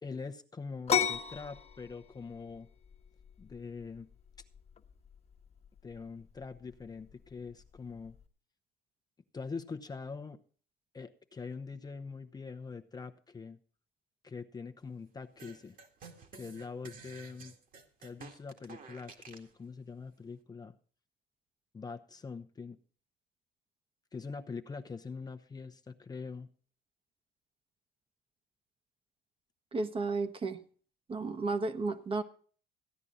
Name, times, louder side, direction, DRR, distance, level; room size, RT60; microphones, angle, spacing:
voice 1, 0.0-2.7 3.4-4.1 5.8-8.1 9.3-10.4 10.9-13.6 14.2-15.7 16.3-17.5 18.0-20.7 21.7-22.8 24.1-26.5, left 4 dB, 25° left, 7 dB, 0.8 m, -43 dB
sound 1, 0.9-8.3, left 8 dB, 40° left, 1.3 m, -37 dB
sound 2, 15.4-19.5, right 5 dB, 55° right, 2.1 m, -52 dB
voice 2, 29.7-30.6 31.1-32.2, right 3 dB, 30° right, 10 dB, 1.2 m, -33 dB
15.0 x 9.9 x 3.8 m, 0.43 s
cardioid pair, 110°, 17 cm